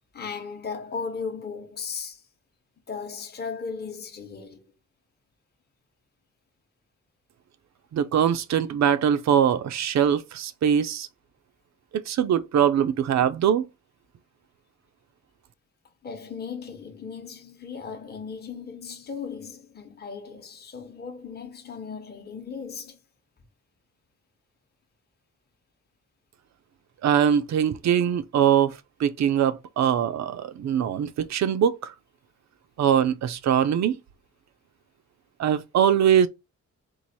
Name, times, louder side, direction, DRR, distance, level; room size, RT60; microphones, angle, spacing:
voice 1, 0.1-2.2 2.9-4.7 16.0-23.0 30.9-31.0, left 5 dB, 30° left, 0.8 m, -36 dB
voice 2, 7.9-11.1 11.9-13.7 27.0-31.9 32.8-34.0 35.4-36.3, right 9 dB, 65° right, 0.5 m, -22 dB
4.7 x 2.5 x 4.1 m
wide cardioid pair, 160°, 30 cm